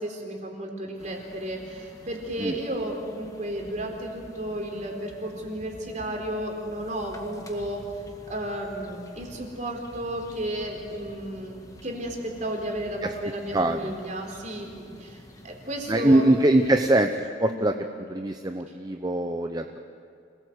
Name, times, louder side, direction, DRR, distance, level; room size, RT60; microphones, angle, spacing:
voice 1, 0.0-7.9 8.3-16.3 17.5-17.7, right 1 dB, 45° right, 1 dB, 4.0 m, -33 dB
sound 1, 1.0-16.9, left 1 dB, 20° left, 1.9 m, -49 dB
voice 2, 13.5-13.9 15.9-17.7 18.1-19.6, right 1 dB, 20° right, 6 dB, 0.8 m, -22 dB
26.0 x 18.5 x 8.1 m, 2.4 s
head